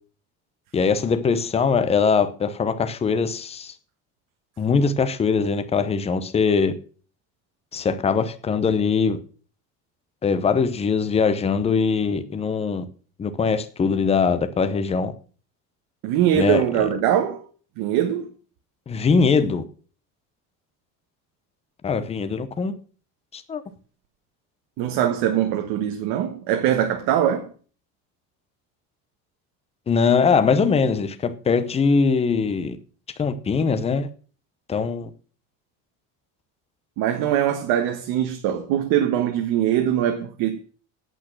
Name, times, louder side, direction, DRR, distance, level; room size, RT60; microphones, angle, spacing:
voice 1, 0.7-3.7 4.6-6.7 7.7-9.2 10.2-12.9 13.2-15.1 16.3-16.8 18.9-19.6 21.8-22.7 23.3-23.6 29.9-32.8 33.2-34.1 34.7-35.1, left 5 dB, 15° left, 0.8 m, -21 dB
voice 2, 16.0-17.5 17.8-18.3 24.8-27.5 37.0-40.6, right 10 dB, 75° right, 1.4 m, -22 dB
9.0 x 8.5 x 6.1 m
cardioid pair, 165°, 36 cm